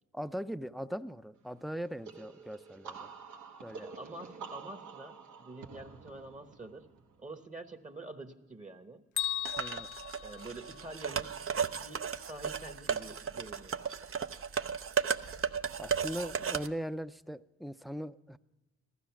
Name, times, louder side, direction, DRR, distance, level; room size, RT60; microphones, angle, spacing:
voice 1, 0.1-3.1 3.6-3.9 9.6-9.9 15.8-18.4, equal, ahead, 13 dB, 0.5 m, -40 dB
sound 1, 2.0-7.6, right 5 dB, 80° right, 1.3 m, -48 dB
voice 2, 3.7-6.9 7.2-9.0 10.2-11.4 11.7-13.8, right 2 dB, 25° right, 7 dB, 1.2 m, -47 dB
Bell, 9.2-11.2, left 13 dB, 80° left, 0.6 m, -37 dB
sound 2, 9.5-16.7, right 6 dB, 50° right, 0.7 m, -35 dB
15.0 x 12.5 x 5.9 m, 1.1 s
cardioid pair, 60°, 29 cm